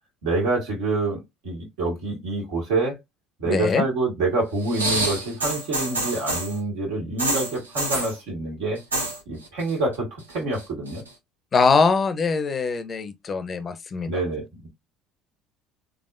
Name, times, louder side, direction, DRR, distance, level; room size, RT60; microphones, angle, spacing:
voice 1, 0.2-3.0 3.4-8.8 9.3-11.0 14.0-14.7, right 2 dB, 65° right, 1.8 m, -26 dB
voice 2, 3.5-3.8 11.5-14.1, left 4 dB, 35° left, 0.6 m, -22 dB
sound 1, 4.6-6.6 7.2-8.2 8.8-9.2 9.4-10.0 10.3-11.1 11.8-11.9, right 2 dB, 85° right, 0.9 m, -27 dB
3.5 x 3.5 x 2.4 m
figure-of-eight pair, 60°, 0 cm